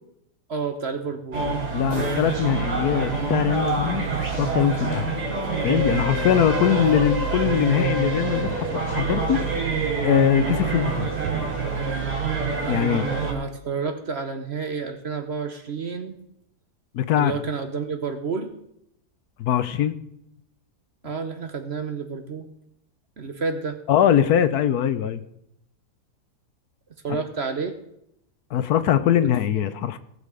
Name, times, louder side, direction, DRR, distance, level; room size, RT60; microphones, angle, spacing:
voice 1, 0.5-1.5 13.3-16.1 17.2-18.5 21.0-22.5 23.2-23.8 27.0-27.8 29.1-29.3, right 5 dB, 45° right, 7 dB, 1.0 m, -30 dB
sound 1, 1.3-13.3, right 4 dB, 75° right, 2.9 m, -26 dB
voice 2, 1.7-4.1 4.3-5.2 5.6-9.4 10.0-11.1 12.7-13.1 16.9-17.3 19.4-19.9 23.9-25.2 27.1-27.2 28.5-30.0, left 10 dB, 70° left, 13 dB, 1.1 m, -22 dB
17.5 x 6.8 x 4.9 m, 0.77 s
omnidirectional pair, 1.8 m